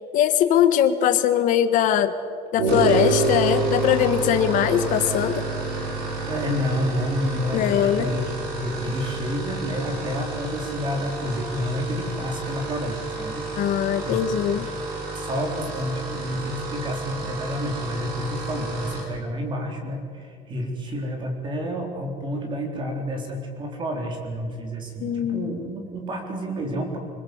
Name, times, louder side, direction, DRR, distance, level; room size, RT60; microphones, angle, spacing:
voice 1, 0.1-2.1 2.5-5.4 7.5-8.0 13.6-14.7 25.0-25.5, left 10 dB, 50° left, 9 dB, 1.6 m, -21 dB
short guitar transitions one note vibratone, 2.5-10.3, right 3 dB, 85° right, 7.8 m, -28 dB
sound 1, 2.7-19.1, right 2 dB, 65° right, 7.3 m, -33 dB
voice 2, 6.2-8.3 8.6-13.5 14.0-14.2 15.1-27.0, equal, 30° right, 3 dB, 4.1 m, -29 dB
26.0 x 21.0 x 8.1 m, 2.4 s
cardioid pair, 175°, 17 cm